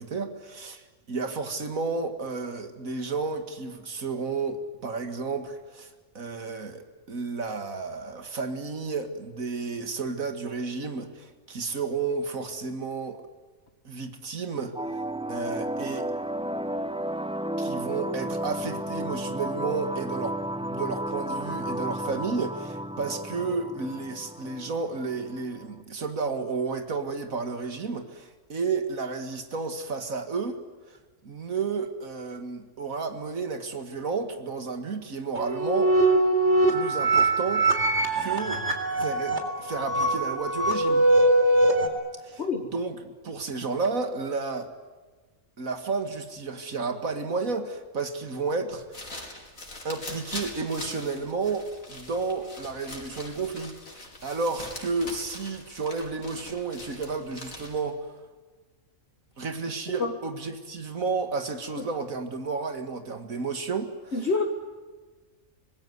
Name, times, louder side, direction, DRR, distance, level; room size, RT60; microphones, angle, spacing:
voice 1, 0.0-13.2 13.8-15.0 15.3-16.1 17.6-30.6 30.9-31.0 31.2-35.9 36.7-37.8 38.2-38.6 39.0-41.1 42.2-44.7 45.6-49.1 49.8-58.1 59.4-64.3, right 4 dB, 85° right, 7 dB, 2.4 m, -32 dB
sound 1, 14.8-25.7, right 1 dB, 5° right, 0.7 m, -33 dB
sound 2, 35.3-41.9, right 2 dB, 55° right, 3.8 m, -22 dB
sound 3, 48.7-57.9, left 2 dB, 80° left, 5.2 m, -42 dB
voice 2, 64.1-64.4, left 4 dB, 55° left, 4 dB, 2.1 m, -26 dB
25.5 x 20.5 x 9.5 m, 1.3 s
omnidirectional pair, 1.4 m